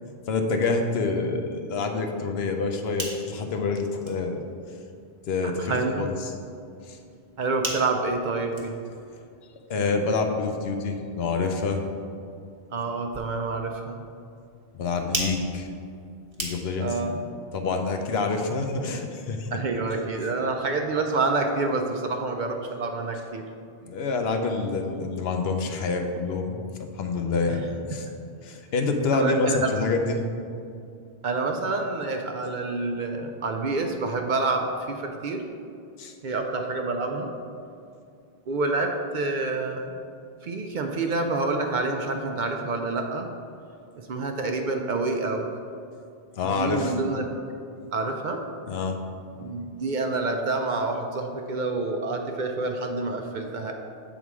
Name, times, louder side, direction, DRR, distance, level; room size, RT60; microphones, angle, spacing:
voice 1, 0.3-4.4 5.3-6.1 6.9-7.0 9.7-11.9 14.7-15.7 16.4-16.9 17.5-19.5 23.8-28.1 28.4-30.2 36.0-36.1 46.4-46.9 48.7-49.0, left 4 dB, 80° left, 4 dB, 0.9 m, -27 dB
sound 1, 2.8-17.0, right 2 dB, 30° right, 1.0 m, -41 dB
voice 2, 5.4-6.0 7.4-8.8 12.7-14.0 16.8-17.2 19.5-23.4 27.4-27.6 29.1-29.7 31.2-35.4 36.2-37.3 38.5-39.9 40.4-43.3 44.1-45.5 46.4-47.3 47.9-48.4 49.4-53.7, right 3 dB, 60° right, 3 dB, 0.6 m, -28 dB
7.1 x 3.7 x 4.7 m, 2.4 s
omnidirectional pair, 1.0 m